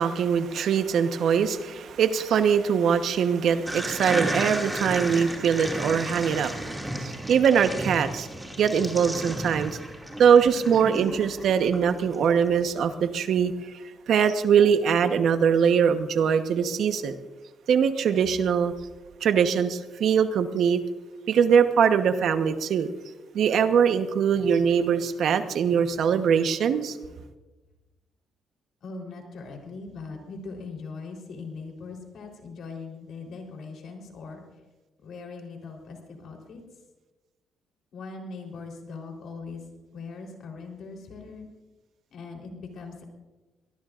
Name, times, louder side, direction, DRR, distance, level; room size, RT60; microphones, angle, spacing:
voice 1, 0.0-8.3 8.6-9.7 10.2-13.7 14.1-17.1 17.7-18.7 19.2-20.8 21.3-22.9 23.3-27.0, right 7 dB, 70° right, 9 dB, 1.1 m, -22 dB
sound 1, 3.7-12.2, right 1 dB, 5° right, 2.3 m, -33 dB
voice 2, 28.8-34.4 35.0-36.6 37.9-39.6 39.9-41.5 42.1-43.1, left 4 dB, 70° left, 1 dB, 3.8 m, -40 dB
23.5 x 19.0 x 2.5 m, 1.2 s
cardioid pair, 90°, 0 cm